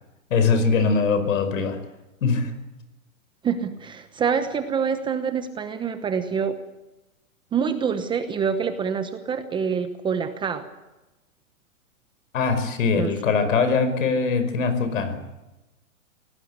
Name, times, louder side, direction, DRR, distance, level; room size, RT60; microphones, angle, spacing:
voice 1, 0.3-1.8 2.2-2.5 12.3-15.2, left 4 dB, 70° left, 11 dB, 5.2 m, -22 dB
voice 2, 3.4-6.6 7.5-10.7 13.0-13.1, right 6 dB, 10° right, 9 dB, 0.9 m, -26 dB
24.5 x 18.0 x 8.1 m, 1.0 s
hypercardioid pair, 150°, 42 cm